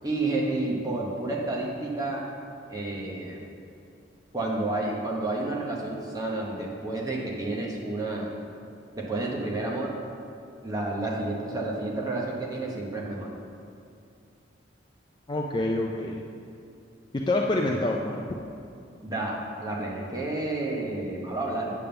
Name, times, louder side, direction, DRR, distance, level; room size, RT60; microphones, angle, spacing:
voice 1, 0.0-2.2 2.7-3.4 4.3-8.3 8.9-9.9 10.6-13.3 19.0-21.7, right 2 dB, 20° right, -3 dB, 1.0 m, -30 dB
voice 2, 15.3-16.2 17.1-18.4, left 2 dB, 25° left, -1 dB, 0.4 m, -27 dB
8.5 x 3.6 x 6.8 m, 2.4 s
head